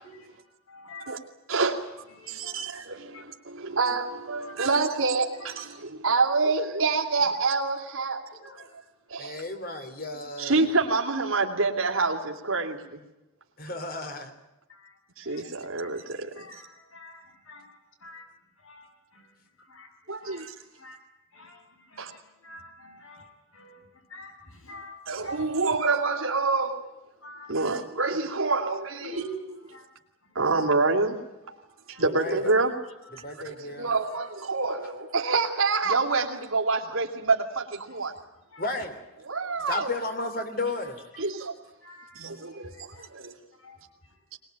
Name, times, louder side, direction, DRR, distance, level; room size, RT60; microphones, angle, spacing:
voice 1, 0.0-1.1 2.1-2.7 3.1-3.2 3.7-3.8 4.4-4.8 5.4-5.5 8.4-8.7 9.2-9.3 14.7-15.5 15.8-18.3 18.6-25.5 27.2-27.6 29.0-29.9 30.2-30.4 31.5-32.3 33.0-34.3 37.8-38.0 38.5-38.7 40.8-40.9 41.8-43.1 43.6-44.2, equal, 85° left, 7.1 m, -47 dB
voice 2, 1.5-1.8 2.3-8.2 9.1-9.4 10.4-13.0 15.2-16.6 20.1-20.5 22.0-22.1 25.1-26.8 27.5-29.2 30.3-31.2 31.9-32.7 33.4-38.1 39.2-39.9 41.2-41.5 42.1-43.3, right 3 dB, 85° right, 3.0 m, -27 dB
voice 3, 9.2-10.7 13.6-14.3 32.0-32.5 33.2-33.9 34.8-34.9 38.6-38.9 39.7-41.2, left 2 dB, 45° left, 3.1 m, -33 dB
22.0 x 21.0 x 9.0 m
head